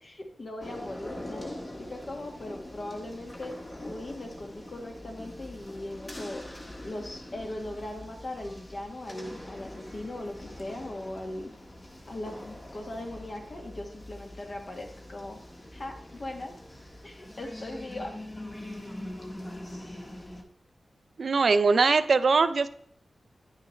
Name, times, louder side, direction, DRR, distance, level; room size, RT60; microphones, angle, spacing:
voice 1, 0.0-3.5 3.8-6.4 6.8-11.5 12.1-15.4 15.7-16.5 17.0-18.1, left 1 dB, 45° left, 2 dB, 1.5 m, -39 dB
sound 1, 0.6-20.4, left 1 dB, 25° left, 1.3 m, -43 dB
voice 2, 21.2-22.7, right 4 dB, 60° right, 11 dB, 0.5 m, -22 dB
9.8 x 6.4 x 3.1 m, 0.64 s
wide cardioid pair, 125°, 0 cm